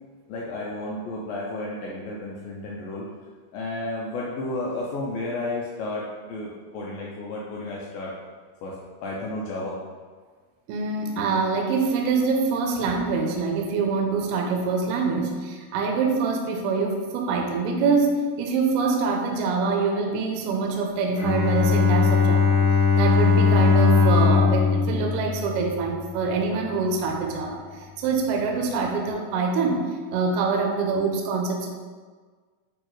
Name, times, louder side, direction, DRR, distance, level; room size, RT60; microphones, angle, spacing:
voice 1, 0.3-3.1 3.5-8.1 8.6-9.8, left 2 dB, 85° left, -4 dB, 2.1 m, -32 dB
voice 2, 10.7-22.6 23.0-31.7, right 4 dB, 80° right, 1 dB, 2.5 m, -25 dB
Bowed string instrument, 21.1-26.1, left 5 dB, 45° left, 2.2 m, -20 dB
8.3 x 3.6 x 3.1 m, 1.5 s
omnidirectional pair, 4.7 m